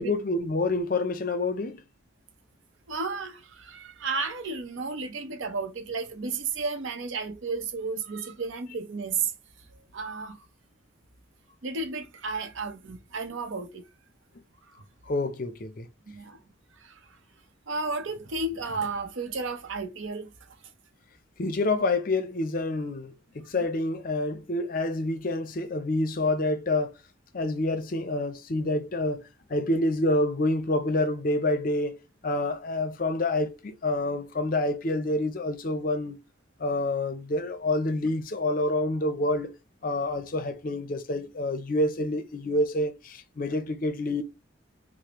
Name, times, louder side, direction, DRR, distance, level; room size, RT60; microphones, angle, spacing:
voice 1, 0.0-1.8 15.1-15.9 21.4-27.0 27.3-36.2 36.6-39.5 39.8-44.2, left 2 dB, 45° left, 0.5 m, -28 dB
voice 2, 2.9-9.3 9.9-10.4 11.6-13.8 14.7-14.8 16.1-16.4 16.8-17.0 17.7-20.3, right 4 dB, 75° right, 0.6 m, -33 dB
4.9 x 2.0 x 2.9 m
head